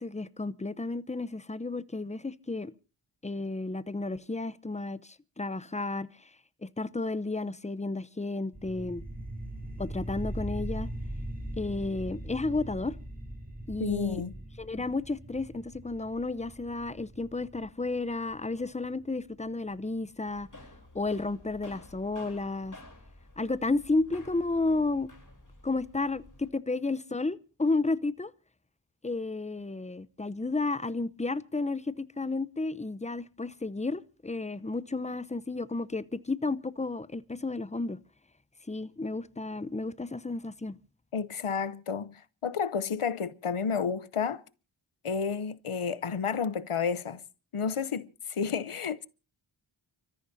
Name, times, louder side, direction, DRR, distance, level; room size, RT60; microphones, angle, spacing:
voice 1, 0.0-2.7 3.2-6.1 6.6-9.0 9.8-10.9 11.6-13.0 13.7-14.2 14.6-20.5 20.9-22.8 23.4-25.1 25.6-28.3 29.0-38.0 38.7-40.8, left 3 dB, 15° left, 0.7 m, -32 dB
sound 1, 8.5-19.5, right 1 dB, 20° right, 6.2 m, -40 dB
voice 2, 13.8-14.3 41.1-44.4 45.0-47.2 47.5-49.1, left 6 dB, 85° left, 0.8 m, -31 dB
sound 2, 20.2-26.5, left 1 dB, 40° left, 3.5 m, -52 dB
30.0 x 14.0 x 2.7 m
wide cardioid pair, 45°, 49 cm